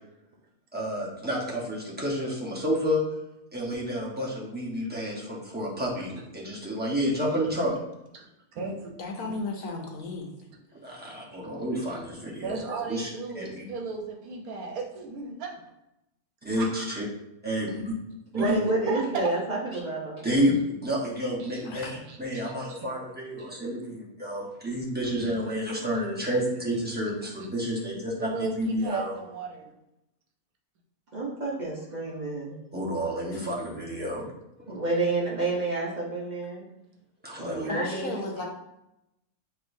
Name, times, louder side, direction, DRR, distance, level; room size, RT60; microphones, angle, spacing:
voice 1, 0.7-3.0 3.5-7.8 10.8-13.1 13.4-13.6 16.4-17.0 17.4-17.8 18.3-18.5 20.2-20.6 20.8-21.9 22.2-29.1 32.7-34.3 37.2-37.7, equal, 10° right, -5 dB, 0.9 m, -30 dB
voice 2, 8.1-8.9 9.2-9.4 11.4-11.5 12.1-15.5 16.6-17.0 18.3-19.3 20.5-20.6 21.4-21.7 22.1-22.9 23.4-23.5 25.0-25.6 26.2-26.3 26.7-27.3 27.6-27.7 28.2-29.7 33.1-33.3 37.9-38.5, right 4 dB, 75° right, 1 dB, 1.3 m, -37 dB
voice 3, 9.0-10.3 10.8-11.2 21.6-21.9 33.3-33.5 37.7-38.5, left 3 dB, 75° left, 1 dB, 1.3 m, -35 dB
voice 4, 18.4-20.3 31.1-32.6 34.6-36.7 37.2-38.2, right 2 dB, 35° right, -5 dB, 0.9 m, -29 dB
6.6 x 3.0 x 2.6 m, 0.87 s
omnidirectional pair, 1.6 m